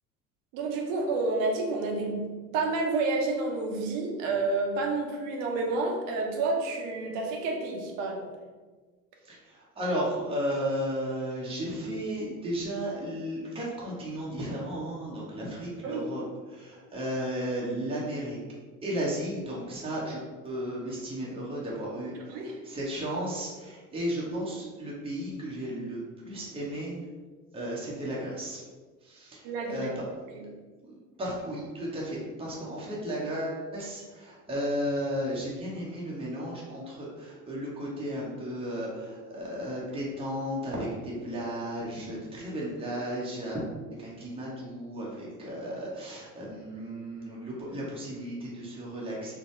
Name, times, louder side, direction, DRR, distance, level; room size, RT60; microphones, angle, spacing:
voice 1, 0.5-8.3 15.8-16.1 22.3-22.6 29.4-29.9 30.3-30.5, right 3 dB, 55° right, 1 dB, 0.8 m, -29 dB
voice 2, 9.2-16.2 16.5-18.4 18.8-27.0 27.5-28.6 29.0-30.1 30.8-43.6 44.0-49.4, equal, 10° right, -5 dB, 0.9 m, -34 dB
3.8 x 2.2 x 3.2 m, 1.4 s
figure-of-eight pair, 60°, 46 cm